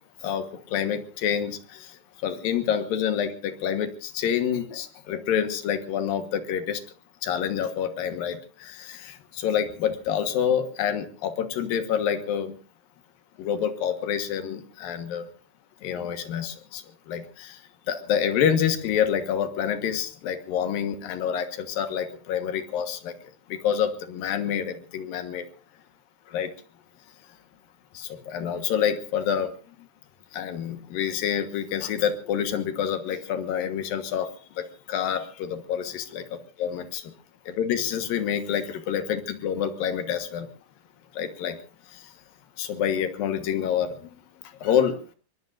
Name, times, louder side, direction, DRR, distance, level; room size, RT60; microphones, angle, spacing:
voice 1, 0.2-2.0 2.2-6.8 7.2-12.6 13.4-15.3 15.8-17.6 17.9-23.2 23.5-25.4 26.3-26.5 27.9-29.5 30.3-34.3 34.6-36.2 36.6-37.1 37.6-40.5 41.1-41.6 41.9-42.1 42.6-44.2 44.6-45.0, left 8 dB, 75° left, 8 dB, 3.1 m, -27 dB
23.5 x 21.5 x 2.6 m, 0.39 s
omnidirectional pair, 4.2 m